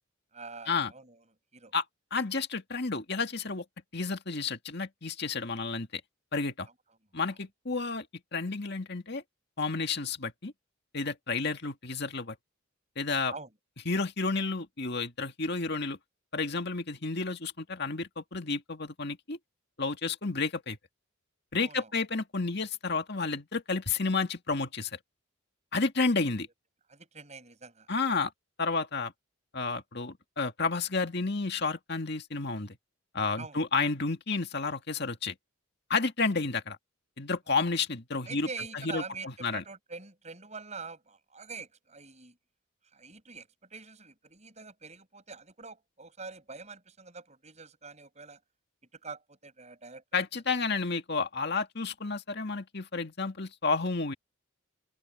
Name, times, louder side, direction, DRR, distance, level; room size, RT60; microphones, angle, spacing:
voice 1, 0.3-1.2 1.5-1.7 13.3-13.5 21.6-21.9 26.9-28.2 33.4-33.6 38.3-42.4 42.9-48.4 48.9-50.2, right 4 dB, 30° right, 7.9 m, -45 dB
voice 2, 2.1-3.6 3.9-6.0 6.3-6.7 7.1-8.1 8.3-9.2 9.6-10.5 10.9-12.4 13.0-13.3 13.9-16.0 16.3-19.4 19.8-20.8 21.5-25.0 25.7-26.5 27.9-28.3 28.6-29.1 29.5-32.8 33.1-35.3 35.9-36.8 37.2-38.5 38.7-39.6 50.1-54.1, left 4 dB, 50° left, 2.1 m, -31 dB
head